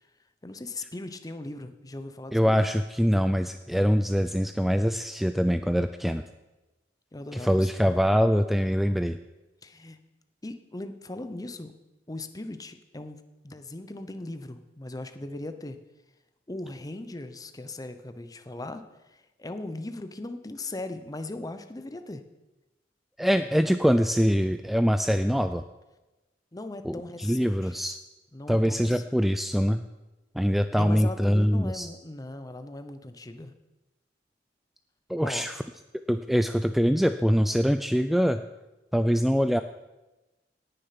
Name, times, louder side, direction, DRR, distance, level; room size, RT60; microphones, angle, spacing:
voice 1, 0.4-2.6 7.1-8.0 9.6-10.0 10.4-11.7 12.1-15.8 16.5-18.8 19.1-22.2 26.5-27.7 28.3-29.0 30.8-33.5 35.2-35.4, left 2 dB, 20° left, 9 dB, 0.8 m, -39 dB
voice 2, 2.3-6.2 7.3-9.2 23.2-25.6 26.8-28.0 28.5-29.8 30.3-31.9 35.1-35.6 36.1-38.4 38.9-39.6, equal, ahead, 9 dB, 0.3 m, -24 dB
18.0 x 6.8 x 5.8 m, 1.1 s
head